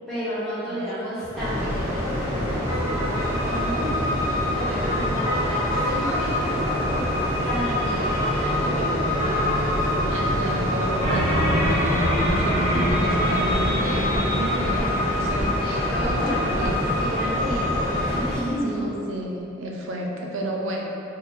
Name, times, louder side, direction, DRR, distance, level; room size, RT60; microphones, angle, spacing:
voice 1, 0.1-4.0 4.5-9.6 13.8-14.2 15.6-18.9, equal, ahead, -14 dB, 1.1 m, -32 dB
sound 1, 1.3-18.3, equal, 15° right, 0.6 m, -26 dB
sound 2, 3.1-18.2, left 3 dB, 85° left, 0.4 m, -30 dB
voice 2, 8.4-9.0 10.1-16.9 18.6-20.9, right 1 dB, 85° right, -1 dB, 0.5 m, -33 dB
sound 3, 11.0-16.7, equal, 60° left, 0.9 m, -26 dB
3.1 x 2.4 x 3.8 m, 3.0 s
head